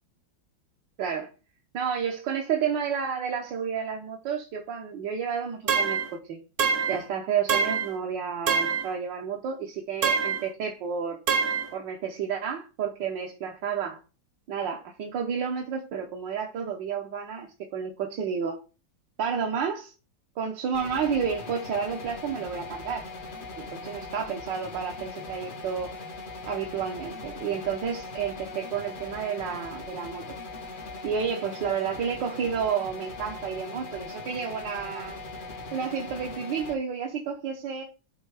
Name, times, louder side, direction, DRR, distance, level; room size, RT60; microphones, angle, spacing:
voice 1, 1.0-1.3 1.7-6.4 6.9-11.2 11.7-14.0 14.5-18.6 19.2-19.9 20.4-23.1 23.6-25.9 26.4-30.4 31.0-35.2 35.7-37.8, right 7 dB, 65° right, 1.6 m, -31 dB
sound 1, 5.7-6.1 6.6-7.0 7.5-7.9 8.5-8.9 10.0-10.5 11.3-11.7, right 6 dB, 45° right, 1.2 m, -25 dB
sound 2, 20.7-36.7, left 3 dB, 55° left, 0.5 m, -40 dB
8.0 x 4.0 x 4.7 m
omnidirectional pair, 2.2 m